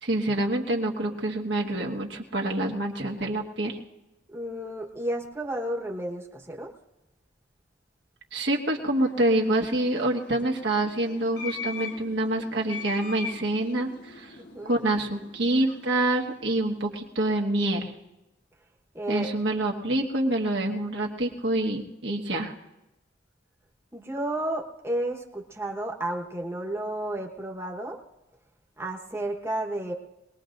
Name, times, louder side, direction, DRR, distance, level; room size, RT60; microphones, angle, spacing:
voice 1, 0.0-3.8 8.3-14.3 14.6-17.9 19.1-22.5, right 1 dB, 65° right, 0 dB, 1.4 m, -26 dB
voice 2, 4.3-6.7 14.5-14.8 18.9-19.3 23.9-28.0 28.8-29.9, right 1 dB, 15° right, -1 dB, 1.2 m, -32 dB
sound 1, 8.7-17.2, left 4 dB, 70° left, 1.3 m, -42 dB
23.0 x 20.0 x 2.6 m, 0.96 s
head